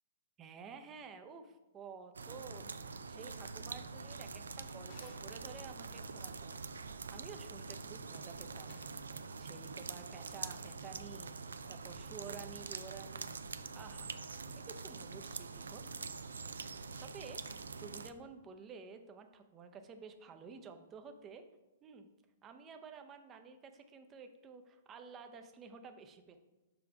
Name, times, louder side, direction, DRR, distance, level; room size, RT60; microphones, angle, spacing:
voice 1, 0.4-6.6 7.1-8.8 9.4-13.4 13.7-14.2 14.5-15.8 16.5-21.4 21.8-22.1 22.4-26.4, right 5 dB, 25° right, 7 dB, 0.6 m, -52 dB
sound 1, 2.1-18.1, right 4 dB, 75° right, 0.3 m, -45 dB
Drawer open or close, 4.2-5.4 8.0-9.0, left 3 dB, 50° left, 1.5 m, -63 dB
6.9 x 3.4 x 4.8 m, 1.1 s
figure-of-eight pair, 115°, 0 cm